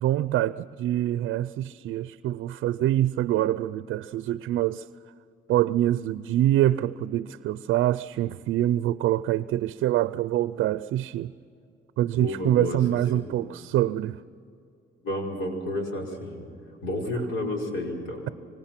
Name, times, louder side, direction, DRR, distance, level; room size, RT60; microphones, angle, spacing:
voice 1, 0.0-4.9 5.5-11.3 12.0-14.2, right 13 dB, 80° right, 0.5 m, -25 dB
voice 2, 12.2-12.8 13.1-13.3 15.0-16.4 16.8-18.3, left 1 dB, 80° left, 5.4 m, -31 dB
25.5 x 25.0 x 5.9 m
cardioid pair, 90°, 20 cm